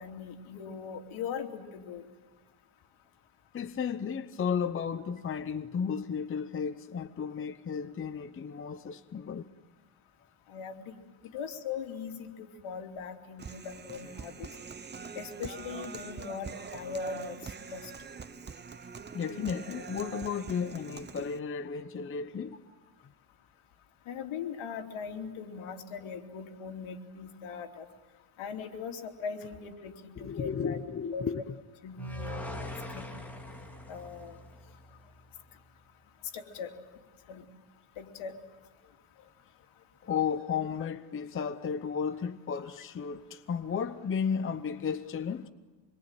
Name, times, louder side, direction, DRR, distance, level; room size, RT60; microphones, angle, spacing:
voice 1, 0.0-2.0 10.5-11.0 11.3-14.5 15.1-17.4 17.7-17.9 24.1-27.9 28.4-30.8 31.1-31.3 31.8-33.1 33.9-34.3 36.3-36.7 37.3-37.4 38.0-38.3, left 6 dB, 75° left, 3.1 m, -40 dB
voice 2, 3.5-9.5 19.1-22.6 30.2-31.5 40.0-45.5, left 6 dB, 25° left, 0.8 m, -33 dB
Human voice, 13.4-21.4, right 5 dB, 20° right, 0.8 m, -44 dB
sound 1, 32.0-35.2, left 1 dB, 5° left, 3.2 m, -41 dB
26.5 x 22.5 x 9.0 m
cardioid pair, 145°, 49 cm